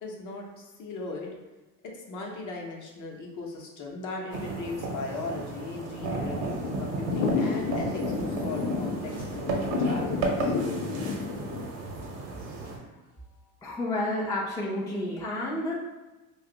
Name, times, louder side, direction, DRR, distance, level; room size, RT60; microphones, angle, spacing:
voice 1, 0.0-1.3 1.8-6.4 6.8-10.5, left 3 dB, 45° left, -1 dB, 0.8 m, -38 dB
sound 1, 4.3-12.8, right 3 dB, 70° right, 0.9 m, -33 dB
Thunder / Rain, 4.7-11.7, left 4 dB, 80° left, 0.6 m, -32 dB
voice 2, 13.6-15.7, left 1 dB, 10° left, -5 dB, 0.5 m, -30 dB
2.5 x 2.3 x 3.8 m, 1.1 s
supercardioid pair, 100°, 42 cm